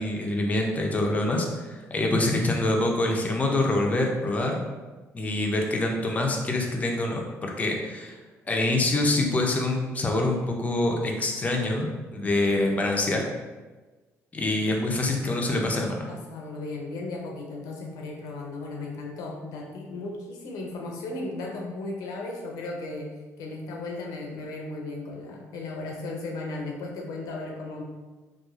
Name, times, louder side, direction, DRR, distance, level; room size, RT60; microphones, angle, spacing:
voice 1, 0.0-4.6 5.1-8.2 8.5-13.3 14.3-16.1, left 2 dB, 25° left, 1 dB, 0.4 m, -25 dB
voice 2, 16.1-23.1 23.4-27.8, left 2 dB, 85° left, 0 dB, 0.5 m, -35 dB
3.0 x 2.3 x 2.3 m, 1.3 s
cardioid pair, 100°, 6 cm